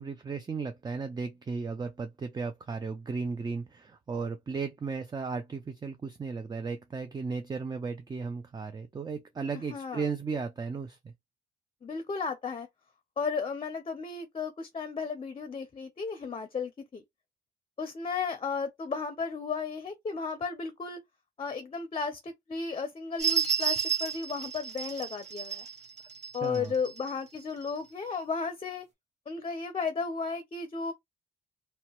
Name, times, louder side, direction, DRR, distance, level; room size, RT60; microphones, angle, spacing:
voice 1, 0.0-11.1 26.4-26.7, right 4 dB, 20° right, 0.4 m, -35 dB
voice 2, 9.7-10.1 11.8-12.7 13.2-17.0 17.8-21.0 21.4-25.7 26.3-28.9 29.3-30.9, left 5 dB, 30° left, 0.6 m, -34 dB
sound 1, 23.2-27.1 27.7-27.8, right 7 dB, 35° right, 1.3 m, -31 dB
2.8 x 2.2 x 3.0 m
cardioid pair, 90°, 20 cm